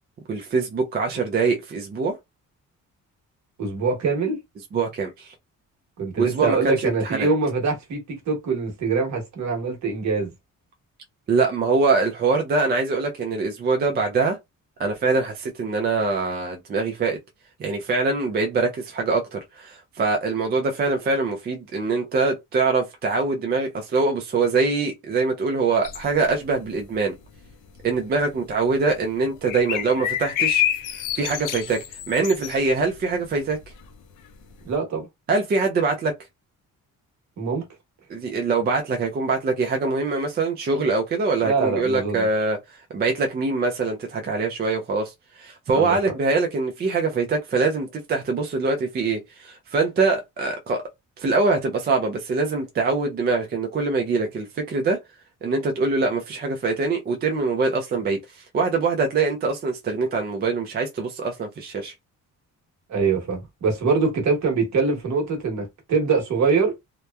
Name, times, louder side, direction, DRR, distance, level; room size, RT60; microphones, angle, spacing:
voice 1, 0.3-2.2 4.7-5.3 6.2-7.3 11.3-14.4 14.8-17.2 17.6-27.1 27.8-30.6 30.9-33.6 35.3-36.1 38.1-50.8 51.2-55.0 55.4-61.9, right 4 dB, 30° right, 0.4 m, -23 dB
voice 2, 3.6-4.4 6.0-10.3 34.6-35.0 37.4-37.6 41.4-42.3 45.7-46.0 62.9-66.7, right 4 dB, 60° right, 1.1 m, -23 dB
sound 1, 25.8-27.1 27.4-27.8 28.2-28.3 28.5-28.9 29.4-33.9 34.1-34.2 34.5-34.6, left 11 dB, 70° left, 0.5 m, -28 dB
2.8 x 2.1 x 2.2 m
cardioid pair, 150°, 32 cm